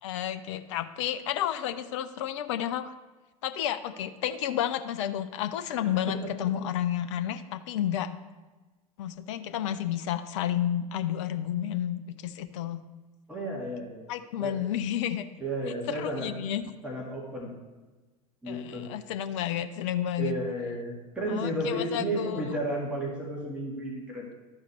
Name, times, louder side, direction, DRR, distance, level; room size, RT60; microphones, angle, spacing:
voice 1, 0.0-2.9 3.4-8.1 9.0-12.8 14.1-15.2 15.9-16.6 18.5-20.4 21.3-22.5, left 11 dB, 55° left, 10 dB, 0.5 m, -31 dB
voice 2, 5.7-6.2 13.3-14.1 14.4-14.5 15.4-16.3 16.8-17.5 18.4-18.9 20.2-24.3, right 1 dB, 5° right, -4 dB, 2.0 m, -33 dB
12.5 x 4.8 x 3.3 m, 1.2 s
figure-of-eight pair, 80°, 19 cm